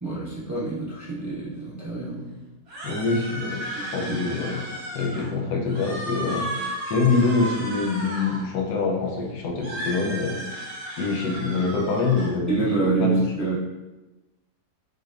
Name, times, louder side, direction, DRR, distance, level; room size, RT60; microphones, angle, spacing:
voice 1, 0.0-2.4 2.9-3.0 3.8-4.3 12.5-13.6, right 3 dB, 15° right, -8 dB, 0.7 m, -27 dB
sound 1, 2.7-5.3 5.6-8.4 9.6-12.3, right 1 dB, 75° right, 2.0 m, -34 dB
voice 2, 2.8-4.6 4.9-10.7 11.0-13.1, left 4 dB, 90° left, 0 dB, 1.3 m, -25 dB
6.0 x 3.2 x 2.5 m, 1.1 s
omnidirectional pair, 1.7 m